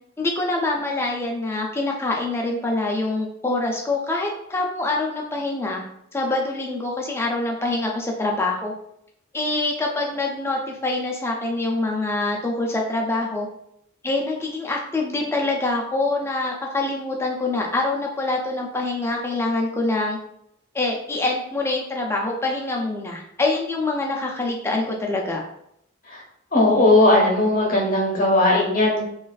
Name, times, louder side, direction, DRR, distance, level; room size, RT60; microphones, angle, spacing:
voice 1, 0.2-5.8 6.1-8.7 9.3-13.5 14.0-20.2 20.7-25.4, left 2 dB, 10° left, -1 dB, 0.3 m, -25 dB
voice 2, 26.5-29.0, left 2 dB, 40° left, -2 dB, 0.7 m, -17 dB
2.4 x 2.2 x 2.3 m, 0.74 s
head